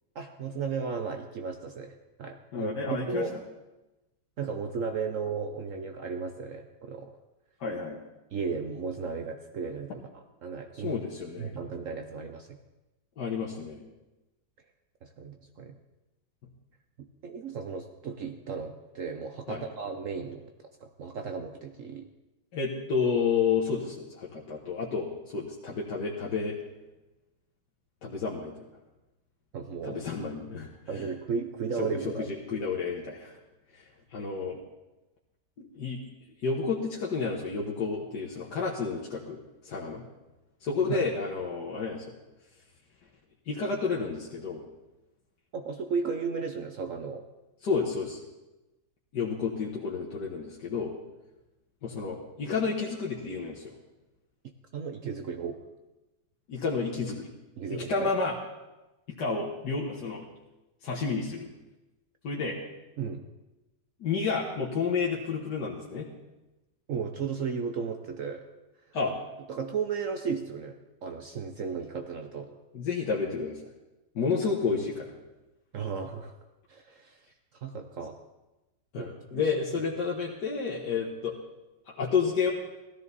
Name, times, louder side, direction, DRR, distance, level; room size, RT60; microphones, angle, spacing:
voice 1, 0.1-3.3 4.4-7.1 8.3-11.0 11.4-12.6 15.0-15.7 17.2-22.1 29.5-30.0 30.9-32.3 40.9-41.1 45.5-47.2 54.7-55.6 57.6-58.1 63.0-63.3 66.9-68.5 69.5-72.6 75.7-76.4 76.7-77.3 77.6-78.2 79.0-79.5, right 5 dB, 60° right, 6 dB, 1.0 m, -35 dB
voice 2, 2.5-3.3 7.6-8.0 10.8-11.5 13.2-13.8 19.5-19.6 22.5-26.6 28.0-28.5 29.8-30.7 30.9-31.0 31.8-31.9 32.2-33.3 33.7-33.8 34.1-34.6 35.6-36.0 36.4-39.4 39.6-40.0 40.6-42.0 43.5-44.6 47.6-48.2 49.1-50.9 51.8-53.7 56.5-57.3 57.7-58.3 59.2-60.3 60.8-61.5 62.2-62.6 64.0-66.1 68.9-69.2 72.7-73.6 74.2-75.1 78.9-81.3 81.9-82.5, left 5 dB, 80° left, -3 dB, 1.9 m, -30 dB
16.5 x 13.5 x 4.1 m, 1.0 s
omnidirectional pair, 1.8 m